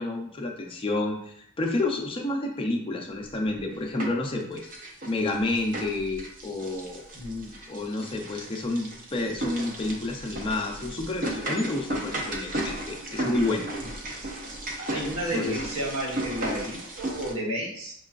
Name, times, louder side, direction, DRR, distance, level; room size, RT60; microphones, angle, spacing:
voice 1, 0.0-4.7 5.1-7.0 7.7-13.7 15.3-15.6, left 2 dB, 25° left, 1 dB, 0.4 m, -29 dB
sound 1, 3.4-4.3 4.6-17.3, right 1 dB, 40° right, 0.6 m, -35 dB
voice 2, 7.1-7.6 14.8-17.9, right 1 dB, 70° right, -3 dB, 1.2 m, -32 dB
5.4 x 2.3 x 2.4 m, 0.70 s
head